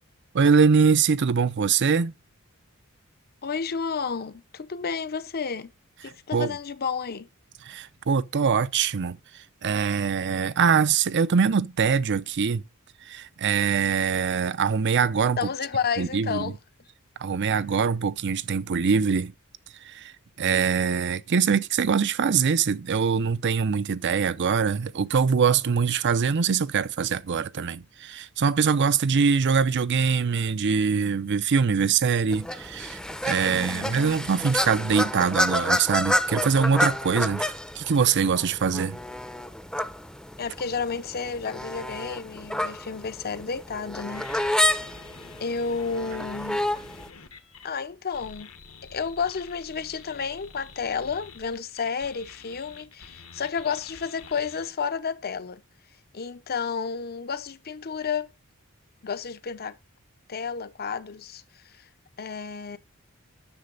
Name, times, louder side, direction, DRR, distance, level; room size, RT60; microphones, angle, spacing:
voice 1, 0.3-2.1 6.3-6.6 7.6-9.2 9.6-12.6 13.1-15.4 16.0-16.5 17.2-19.3 19.8-20.1 20.4-39.0, right 6 dB, 55° right, 0.6 m, -23 dB
voice 2, 3.4-5.7 6.0-7.3 15.4-16.5 33.4-34.2 40.4-44.5 45.4-46.6 47.6-48.5 48.9-55.6 56.1-58.3 59.0-59.8 60.3-61.9 62.2-62.8, left 5 dB, 45° left, 0.7 m, -31 dB
Geese at a small german lake, 32.3-47.1, left 1 dB, 5° left, 0.6 m, -29 dB
sound 1, 44.1-47.7 48.1-54.7, left 5 dB, 70° left, 1.3 m, -47 dB
9.8 x 6.8 x 3.9 m
head